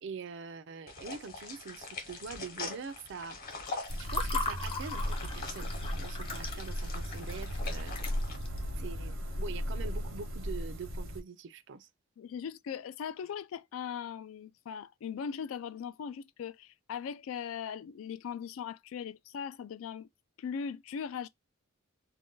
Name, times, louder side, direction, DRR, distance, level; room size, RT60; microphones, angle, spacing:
voice 1, 0.0-3.6 4.0-8.0 8.8-11.9, right 5 dB, 60° right, 0.4 m, -44 dB
sound 1, 0.9-8.4, left 3 dB, 45° left, 1.0 m, -44 dB
Water / Fill (with liquid), 3.5-8.6, left 3 dB, 25° left, 0.6 m, -39 dB
sound 2, 3.9-11.2, equal, 75° right, 0.9 m, -36 dB
voice 2, 12.2-20.1 20.4-21.3, left 7 dB, 80° left, 0.3 m, -39 dB
2.5 x 2.2 x 3.7 m
head